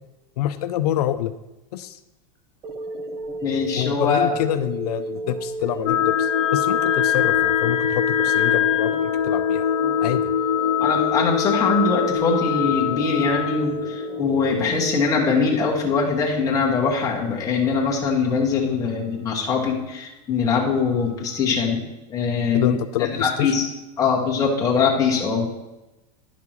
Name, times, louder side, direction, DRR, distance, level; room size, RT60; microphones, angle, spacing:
voice 1, 0.4-1.3 1.7-2.0 3.8-9.7 10.0-10.3 22.5-23.5, left 12 dB, 90° left, 10 dB, 0.5 m, -26 dB
sound 1, 2.6-15.0, right 2 dB, 25° right, 0.7 m, -33 dB
voice 2, 3.4-4.3 10.8-21.8 22.1-22.7 23.0-23.7 24.0-25.5, left 5 dB, 20° left, -3 dB, 1.5 m, -22 dB
sound 2, 5.9-15.4, left 10 dB, 55° left, 1.1 m, -23 dB
10.5 x 5.9 x 3.1 m, 1.0 s
supercardioid pair, 155°, 19 cm